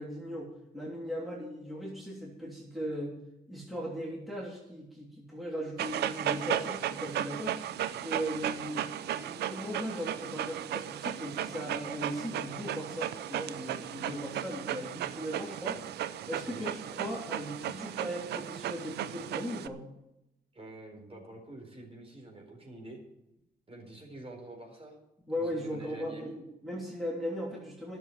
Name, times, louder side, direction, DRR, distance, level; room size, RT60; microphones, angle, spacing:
voice 1, 0.0-3.2 3.5-7.6 8.0-15.8 16.3-19.8 25.3-28.0, equal, ahead, -3 dB, 3.1 m, -38 dB
Dog, 5.8-19.7, right 11 dB, 85° right, 0.5 m, -35 dB
voice 2, 20.5-23.0 23.7-24.9 25.3-26.3, right 2 dB, 35° right, 1 dB, 4.4 m, -47 dB
11.0 x 6.9 x 9.1 m, 0.87 s
cardioid pair, 60°, 17 cm